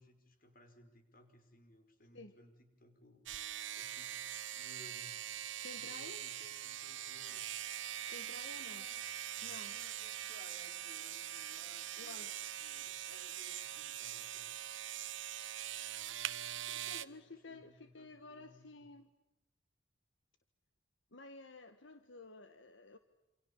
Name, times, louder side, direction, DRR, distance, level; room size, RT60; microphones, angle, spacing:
voice 1, 0.0-5.4 5.7-7.5 8.6-9.1 9.6-14.5 16.7-18.9, left 1 dB, 50° left, 7 dB, 5.3 m, -62 dB
sound 1, 3.3-17.1, right 11 dB, 75° right, 1.1 m, -43 dB
voice 2, 5.6-6.2 8.1-8.8 9.4-9.8 12.0-12.4 16.9-19.1 21.1-23.0, left 2 dB, 70° left, 9 dB, 1.6 m, -52 dB
28.5 x 27.5 x 7.2 m, 1.0 s
head